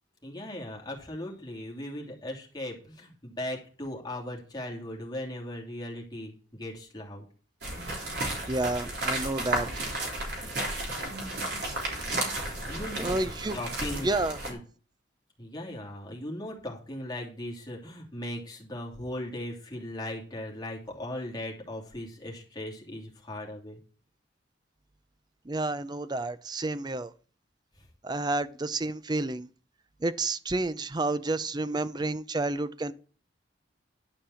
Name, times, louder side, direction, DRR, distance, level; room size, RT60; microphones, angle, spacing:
voice 1, 0.2-7.3 12.6-14.6 15.4-23.8 27.8-27.9, left 1 dB, 20° left, 2.8 m, -38 dB
sound 1, 7.6-14.5, right 1 dB, 60° right, 3.8 m, -33 dB
voice 2, 8.5-9.7 13.0-13.6 14.0-14.4 25.5-27.1 28.0-29.5 30.0-32.9, right 2 dB, 25° right, 0.5 m, -30 dB
11.5 x 5.4 x 7.0 m
head